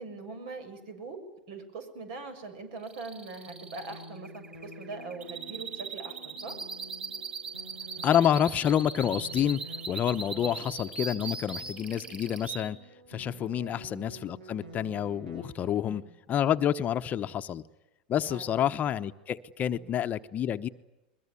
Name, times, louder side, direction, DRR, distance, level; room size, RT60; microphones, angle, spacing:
voice 1, 0.0-6.6 10.2-10.6 13.5-13.8 15.6-16.1 18.2-18.7 19.7-19.9, right 3 dB, 60° right, 8 dB, 7.2 m, -42 dB
sound 1, 2.8-12.6, right 4 dB, 20° right, 7.3 m, -39 dB
sound 2, 3.5-15.5, equal, 85° right, 7.0 m, -49 dB
voice 2, 8.0-9.6 9.9-12.8 13.1-16.0 16.3-17.6 18.1-20.7, left 10 dB, 35° left, 9 dB, 1.0 m, -28 dB
22.5 x 22.0 x 9.9 m, 0.96 s
hypercardioid pair, 105°, 5 cm